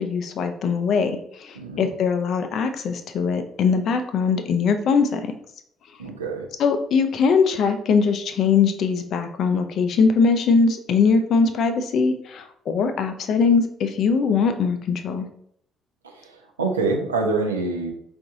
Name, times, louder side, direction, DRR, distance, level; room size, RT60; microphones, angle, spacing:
voice 1, 0.0-5.2 6.6-15.3, left 5 dB, 50° left, 8 dB, 0.5 m, -21 dB
voice 2, 1.5-1.9 6.0-6.5 16.0-17.9, right 3 dB, 80° right, 2 dB, 0.6 m, -26 dB
4.7 x 2.6 x 3.6 m, 0.68 s
figure-of-eight pair, 50°, 0 cm